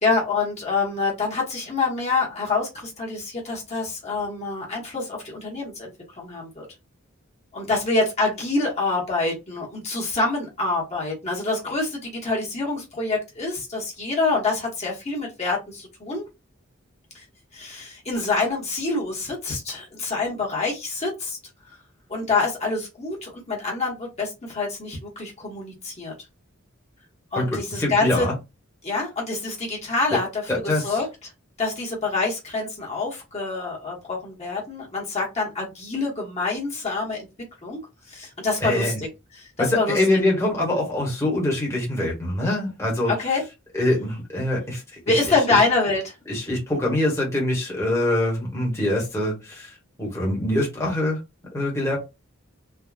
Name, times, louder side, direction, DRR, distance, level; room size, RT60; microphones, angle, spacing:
voice 1, 0.0-5.9 6.2-6.6 7.5-16.2 17.1-17.2 17.5-21.4 22.1-26.1 27.3-28.2 28.8-30.4 30.8-31.0 31.6-37.2 37.6-37.8 38.1-39.1 39.4-40.0 43.1-43.4 45.1-46.2, left 3 dB, 35° left, -3 dB, 1.0 m, -26 dB
voice 2, 27.8-28.3 30.1-30.2 30.5-31.0 38.6-39.0 39.6-43.1 43.7-45.6 46.3-51.2 51.5-52.0, left 1 dB, 15° left, -3 dB, 1.0 m, -24 dB
3.5 x 2.2 x 2.4 m, 0.25 s
head